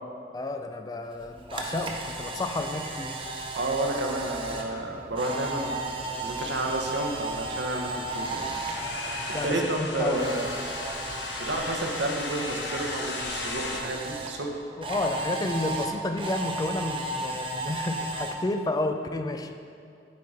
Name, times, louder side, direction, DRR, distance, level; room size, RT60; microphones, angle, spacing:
voice 1, 0.3-3.2 9.3-10.4 14.8-19.5, left 2 dB, 20° left, 7 dB, 0.3 m, -31 dB
Camera, 1.2-9.5 9.8-14.3 14.8-18.3, right 2 dB, 30° right, 0.6 m, -35 dB
voice 2, 3.5-5.8 6.2-8.5 9.4-10.5 11.4-14.6, right 2 dB, 75° right, 2 dB, 0.9 m, -30 dB
sound 1, 4.2-11.9, right 1 dB, 5° right, 1.0 m, -48 dB
sound 2, 7.2-13.8, left 3 dB, 70° left, 0.7 m, -37 dB
8.4 x 4.8 x 4.1 m, 2.4 s
head